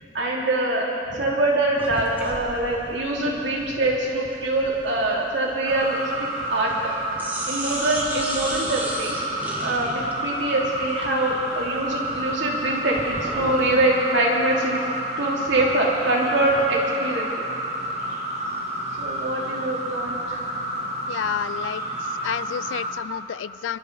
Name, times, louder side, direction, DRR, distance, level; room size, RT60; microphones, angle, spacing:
voice 1, 0.1-6.9 7.4-9.2 9.6-14.8 15.2-17.3 19.0-20.5, right 2 dB, 70° right, -3 dB, 2.7 m, -24 dB
sound 1, 1.8-6.9 7.2-13.7, right 1 dB, 10° right, 1.7 m, -36 dB
sound 2, 5.6-22.9, right 1 dB, 35° right, 2.4 m, -30 dB
voice 2, 21.1-21.8 22.2-23.8, left 8 dB, 85° left, 18 dB, 0.3 m, -30 dB
23.5 x 12.5 x 4.0 m, 2.8 s
head